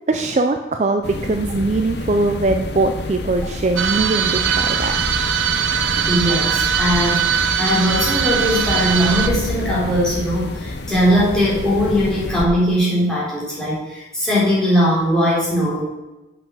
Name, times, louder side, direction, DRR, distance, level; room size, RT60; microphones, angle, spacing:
voice 1, 0.1-4.9, right 2 dB, 35° right, 5 dB, 0.4 m, -21 dB
sound 1, 1.0-12.4, left 2 dB, 60° left, 0.7 m, -28 dB
sound 2, 3.8-9.3, right 9 dB, 75° right, 0.7 m, -21 dB
voice 2, 6.1-15.8, equal, 5° left, -8 dB, 3.4 m, -19 dB
7.6 x 6.0 x 6.2 m, 1.0 s
head